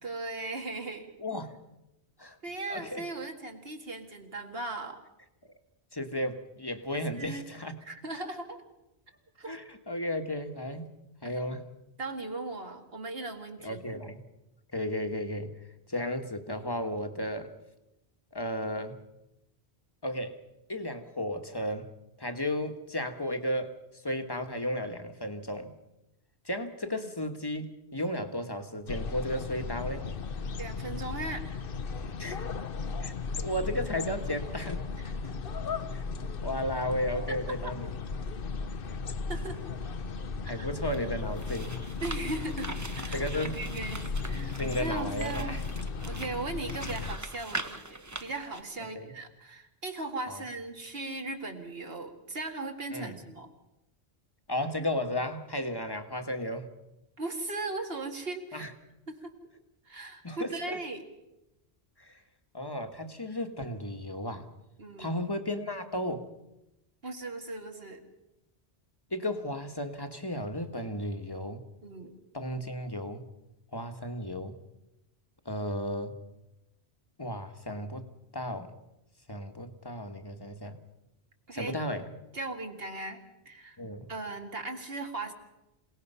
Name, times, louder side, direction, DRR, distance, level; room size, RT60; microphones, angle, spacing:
voice 1, 0.0-1.1 2.4-5.0 6.9-7.5 7.8-8.6 9.4-9.6 11.2-11.5 12.0-13.8 26.8-27.1 30.6-31.5 35.0-35.3 37.3-37.7 39.3-39.6 40.4-40.7 42.0-45.6 46.1-53.5 57.2-58.7 59.1-59.3 59.9-61.0 64.8-65.1 67.0-68.0 71.8-72.2 81.5-81.8 82.3-83.8 84.1-85.3, right 2 dB, 65° right, 4 dB, 2.3 m, -38 dB
voice 2, 1.2-1.5 2.2-2.4 2.7-3.0 5.9-7.7 9.5-10.9 11.2-11.6 13.6-14.2 14.7-15.6 15.9-17.5 18.3-19.0 20.0-20.4 20.7-21.9 22.2-23.7 24.0-25.7 26.4-30.1 32.2-32.5 33.0-34.9 35.9-36.0 36.4-37.9 40.4-41.8 43.1-43.6 44.6-45.6 48.9-49.1 50.3-50.4 52.9-53.2 54.5-56.7 58.5-58.7 60.2-60.8 62.0-62.2 62.5-64.5 65.0-66.3 69.1-71.6 72.3-73.2 73.7-74.6 75.4-76.1 77.2-78.1 78.3-78.7 79.3-80.7 81.5-82.1 83.8-84.1, left 1 dB, 20° left, 7 dB, 1.4 m, -34 dB
sound 1, 28.9-47.2, left 4 dB, 60° left, 1.1 m, -36 dB
sound 2, 40.8-48.6, right 2 dB, 15° right, 0.9 m, -42 dB
27.5 x 18.0 x 5.6 m, 0.93 s
omnidirectional pair, 1.1 m